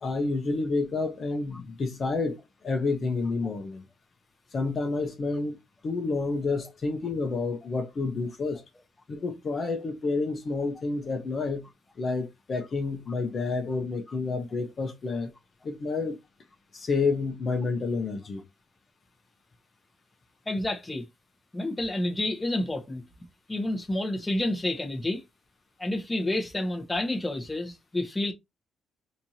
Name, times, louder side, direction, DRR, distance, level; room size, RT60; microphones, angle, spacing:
voice 1, 0.0-3.8 4.5-5.6 5.8-8.6 9.1-11.6 12.0-15.3 15.6-16.2 16.7-18.4, left 3 dB, 45° left, 0.9 m, -29 dB
voice 2, 20.5-21.0 21.5-23.0 23.5-25.2 25.8-28.3, left 1 dB, 15° left, 1.1 m, -29 dB
4.4 x 2.8 x 2.8 m
cardioid pair, 90°, 0 cm